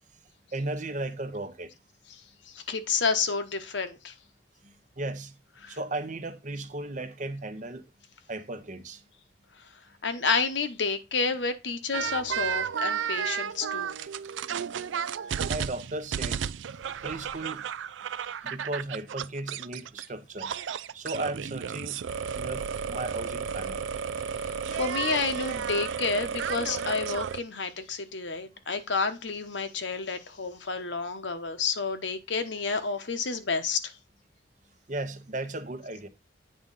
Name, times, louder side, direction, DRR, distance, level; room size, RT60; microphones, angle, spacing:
voice 1, 0.5-1.7 4.6-5.4 5.7-7.9 8.3-9.0 14.0-14.1 15.5-16.4 17.0-17.7 18.4-20.5 20.9-22.0 22.4-23.8 34.9-36.1, right 2 dB, 40° right, 0.8 m, -35 dB
voice 2, 2.5-4.1 5.6-5.8 10.0-13.9 24.7-33.9, left 4 dB, 75° left, 1.0 m, -30 dB
sound 1, 11.9-20.1 20.4-27.4, right 7 dB, 85° right, 0.4 m, -33 dB
8.6 x 3.7 x 5.4 m
head